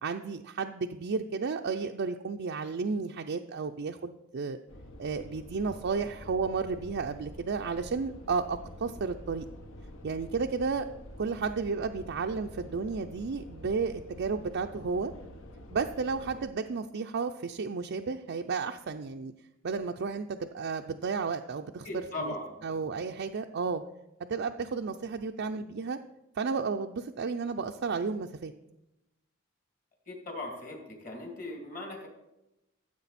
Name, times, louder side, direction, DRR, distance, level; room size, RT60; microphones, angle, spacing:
voice 1, 0.0-4.6 5.0-9.5 10.0-10.9 11.2-15.1 15.7-19.3 19.6-21.9 22.2-22.3 22.6-23.8 24.3-26.0 26.4-28.5, right 4 dB, 55° right, 3 dB, 0.4 m, -32 dB
sound 1, 4.7-16.5, left 1 dB, 60° left, 1.0 m, -47 dB
voice 2, 21.8-22.6 30.1-32.1, left 2 dB, 40° left, 1 dB, 2.5 m, -39 dB
14.0 x 7.6 x 4.2 m, 0.92 s
head